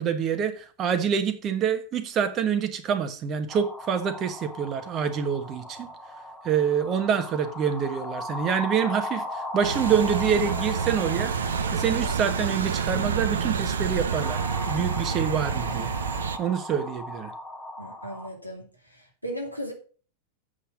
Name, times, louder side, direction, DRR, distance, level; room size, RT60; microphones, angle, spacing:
voice 1, 0.0-5.9 6.4-15.9 16.4-17.3, right 7 dB, 30° right, 1.3 m, -26 dB
sound 1, 3.5-18.3, left 1 dB, 10° left, 2.0 m, -37 dB
sound 2, 9.6-16.4, right 6 dB, 65° right, 0.8 m, -28 dB
voice 2, 17.8-18.7 19.2-19.7, equal, 90° left, 2.4 m, -35 dB
8.2 x 5.8 x 6.2 m
figure-of-eight pair, 90°, 0 cm